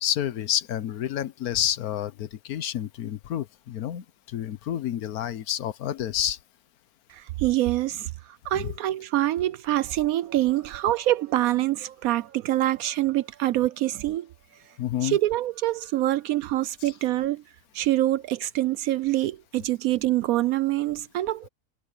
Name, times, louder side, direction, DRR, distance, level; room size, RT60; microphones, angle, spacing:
voice 1, 0.0-6.4 8.5-8.7 14.8-15.2, left 11 dB, 80° left, 1.4 m, -29 dB
voice 2, 7.1-14.3 15.0-17.4 17.7-21.5, right 15 dB, 75° right, 1.0 m, -25 dB
omnidirectional pair, 1.5 m